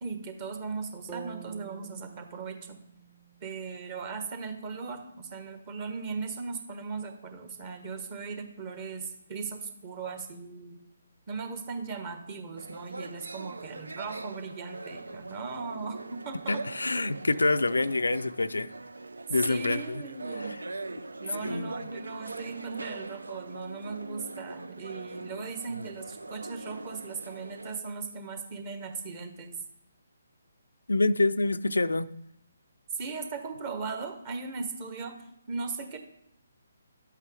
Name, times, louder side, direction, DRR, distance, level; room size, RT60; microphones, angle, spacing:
voice 1, 0.0-2.7 3.4-10.8 11.3-16.6 19.5-20.6 21.2-29.5 32.9-36.0, right 4 dB, 30° right, 1.4 m, -38 dB
sound 1, 1.1-5.2, right 10 dB, 15° right, 0.8 m, -49 dB
sound 2, 12.6-27.8, right 2 dB, 75° right, 0.5 m, -41 dB
voice 2, 16.5-18.7 19.3-20.0 20.4-20.6 21.4-21.7 30.9-32.1, left 2 dB, 75° left, 0.4 m, -26 dB
11.0 x 8.2 x 3.4 m
figure-of-eight pair, 140°, 0 cm